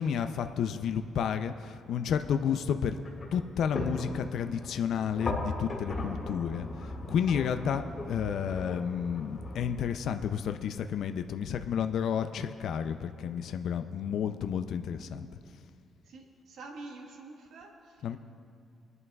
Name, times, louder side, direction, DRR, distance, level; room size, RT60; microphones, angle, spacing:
voice 1, 0.0-3.0 3.3-15.3 18.0-18.2, left 8 dB, 60° left, 8 dB, 0.4 m, -31 dB
sound 1, 2.2-9.7, left 2 dB, 25° left, 1.9 m, -38 dB
voice 2, 16.0-18.2, right 3 dB, 60° right, 1 dB, 1.3 m, -47 dB
21.5 x 11.0 x 2.3 m, 2.4 s
cardioid pair, 170°, 0 cm